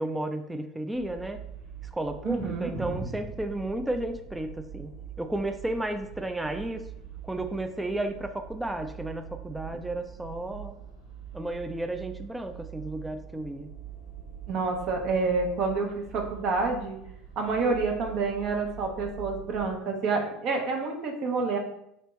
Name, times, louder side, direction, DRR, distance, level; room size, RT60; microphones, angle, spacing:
voice 1, 0.0-1.4 1.9-4.9 5.2-6.8 7.2-10.8 11.3-13.7, right 1 dB, 10° right, 7 dB, 0.4 m, -33 dB
sound 1, 0.9-19.7, right 9 dB, 80° right, 1.4 m, -44 dB
voice 2, 2.2-3.0 14.5-17.0 17.4-21.6, right 4 dB, 50° right, 2 dB, 0.8 m, -28 dB
3.3 x 2.9 x 4.1 m, 0.77 s
figure-of-eight pair, 70°, 0 cm